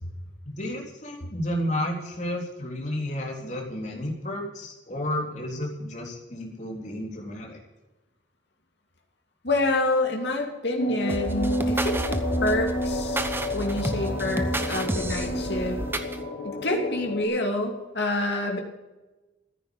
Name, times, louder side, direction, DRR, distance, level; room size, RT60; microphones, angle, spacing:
voice 1, 0.4-7.6, left 1 dB, 40° left, 0 dB, 3.6 m, -32 dB
voice 2, 9.4-15.8 16.4-18.6, left 2 dB, 65° left, 1 dB, 2.8 m, -28 dB
sound 1, 10.8-17.2, left 1 dB, 80° left, 3.8 m, -30 dB
sound 2, 11.1-16.2, right 1 dB, 10° right, 0.9 m, -30 dB
14.5 x 10.0 x 6.9 m, 1.1 s
head